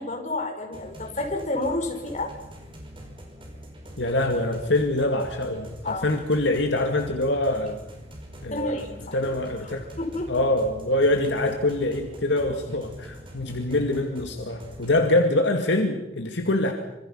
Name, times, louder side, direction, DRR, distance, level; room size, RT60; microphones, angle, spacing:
voice 1, 0.0-2.3 5.8-6.2 8.5-9.3 9.6-10.3, left 2 dB, 40° left, 2 dB, 5.3 m, -30 dB
sound 1, 0.7-15.0, equal, 30° right, 5.6 m, -44 dB
voice 2, 4.0-7.8 8.4-8.9 9.1-9.8 10.3-16.7, left 2 dB, 75° left, 4 dB, 2.3 m, -24 dB
26.5 x 26.5 x 5.8 m, 0.90 s
head